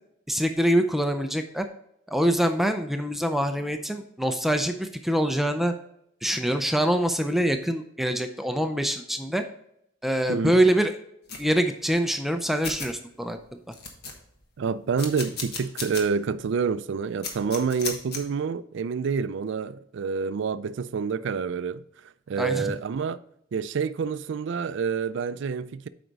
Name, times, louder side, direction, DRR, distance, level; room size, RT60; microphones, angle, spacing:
voice 1, 0.3-1.7 2.1-5.7 6.2-9.4 10.0-10.9 11.4-13.4 22.4-22.7, right 1 dB, ahead, 0.4 m, -24 dB
voice 2, 10.3-10.6 14.6-23.2 23.5-25.9, right 5 dB, 65° right, 0.4 m, -28 dB
sound 1, 11.3-11.5 12.3-12.4 12.6-12.9 13.4-13.5 13.7-14.4 15.0-16.0 16.4-16.5 17.2-18.2, left 4 dB, 55° left, 1.3 m, -34 dB
7.8 x 5.1 x 4.0 m
head